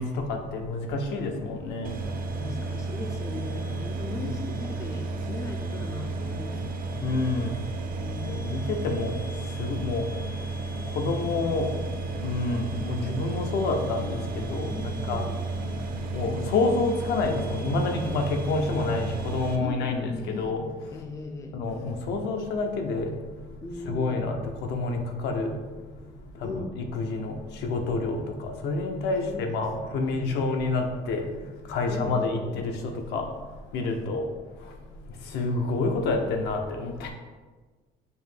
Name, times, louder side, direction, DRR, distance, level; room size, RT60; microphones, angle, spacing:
voice 1, 0.0-2.4 4.1-4.2 7.0-7.6 7.9-8.0 8.2-11.9 12.1-21.0 21.5-34.8 35.0-37.1, left 3 dB, 80° left, 3 dB, 0.6 m, -29 dB
sound 1, 1.8-19.6, right 3 dB, 60° right, 0.5 m, -33 dB
voice 2, 2.4-6.7 7.9-8.2 14.7-15.4 19.6-20.5 20.9-21.6 23.6-24.3 26.4-26.8 29.3-29.6 29.9-30.5 31.9-32.6 33.9-34.0, left 3 dB, 20° left, 3 dB, 0.4 m, -38 dB
5.2 x 2.1 x 3.3 m, 1.3 s
cardioid pair, 110°, 17 cm